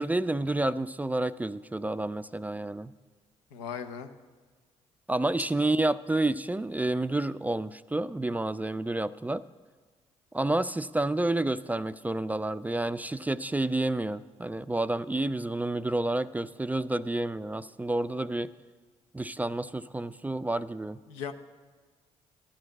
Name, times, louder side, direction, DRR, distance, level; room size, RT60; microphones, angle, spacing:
voice 1, 0.0-2.9 5.1-9.4 10.3-18.5 19.1-21.0, right 2 dB, 10° right, 14 dB, 0.3 m, -29 dB
voice 2, 3.5-4.1 21.1-21.3, left 7 dB, 85° left, 8 dB, 0.6 m, -37 dB
11.5 x 6.2 x 7.5 m, 1.4 s
hypercardioid pair, 45°, 15 cm